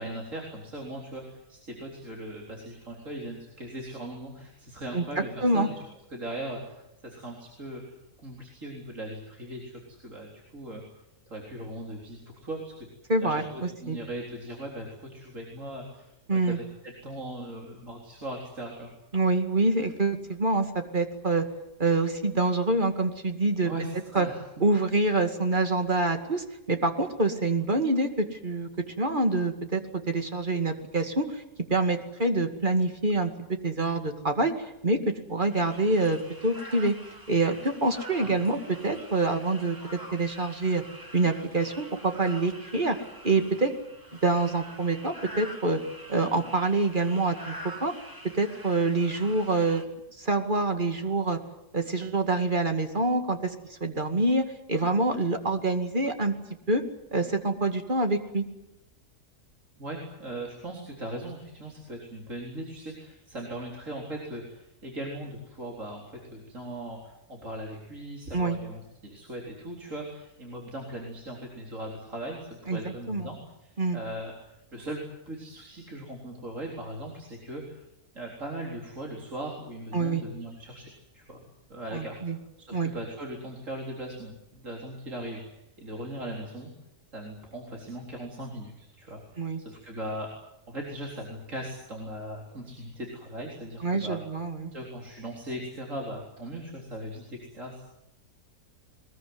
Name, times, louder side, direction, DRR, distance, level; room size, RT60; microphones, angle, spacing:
voice 1, 0.0-5.8 6.1-7.8 8.2-9.7 10.0-10.8 11.3-12.7 13.2-18.9 23.6-24.4 38.2-38.3 59.8-77.8 78.1-81.4 81.7-82.2 82.6-86.7 87.1-90.3 90.7-94.2 94.7-97.8, right 1 dB, 55° right, -1 dB, 4.3 m, -39 dB
voice 2, 4.9-5.7 13.1-14.0 16.3-16.6 19.1-21.4 21.8-23.7 24.1-24.3 24.6-28.7 29.0-31.4 31.7-37.0 37.3-39.8 40.1-40.8 41.1-43.0 43.2-43.7 44.2-45.8 46.1-47.5 47.8-47.9 48.3-49.9 50.2-51.4 51.7-56.3 56.7-56.8 57.1-58.4 68.3-68.6 72.7-72.8 73.1-73.3 73.8-74.0 79.9-80.2 81.9-82.4 82.7-82.9 89.4-89.6 93.8-94.7, right 2 dB, 30° right, 6 dB, 2.4 m, -26 dB
sound 1, 35.5-49.8, equal, 15° right, 2.7 m, -46 dB
22.0 x 21.0 x 9.6 m, 0.85 s
omnidirectional pair, 1.6 m